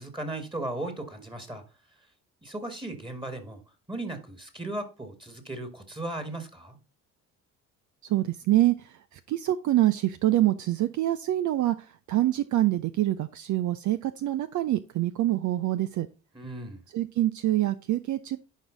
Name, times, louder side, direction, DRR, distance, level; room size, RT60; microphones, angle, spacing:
voice 1, 0.0-1.6 2.4-3.6 3.9-6.8 16.3-16.8, right 2 dB, 10° right, 1.9 m, -36 dB
voice 2, 8.1-8.8 9.3-11.8 12.1-16.1 16.9-18.4, right 14 dB, 45° right, 0.6 m, -25 dB
10.5 x 4.7 x 3.9 m
figure-of-eight pair, 50°, 42 cm